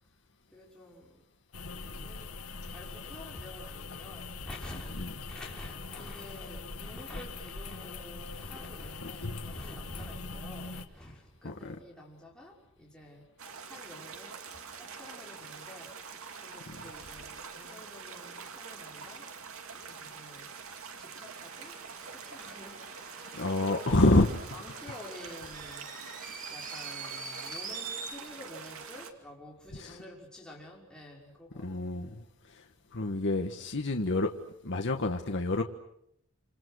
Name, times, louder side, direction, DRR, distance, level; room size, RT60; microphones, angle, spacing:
voice 1, 0.5-1.2 1.8-2.3 2.7-13.3 13.6-19.3 19.7-20.5 21.0-22.8 23.1-24.1 24.5-31.9, left 1 dB, 5° left, 6.0 m, -49 dB
sound 1, 1.5-10.9, left 3 dB, 75° left, 1.6 m, -42 dB
voice 2, 11.4-11.8 23.3-24.3 29.7-30.0 31.5-32.2 32.5-32.6 32.9-34.3 34.6-35.6, left 2 dB, 60° left, 1.5 m, -27 dB
sound 2, 13.4-29.1, right 5 dB, 70° right, 2.6 m, -45 dB
sound 3, 21.3-28.1, right 5 dB, 40° right, 3.4 m, -44 dB
28.0 x 27.5 x 6.4 m
head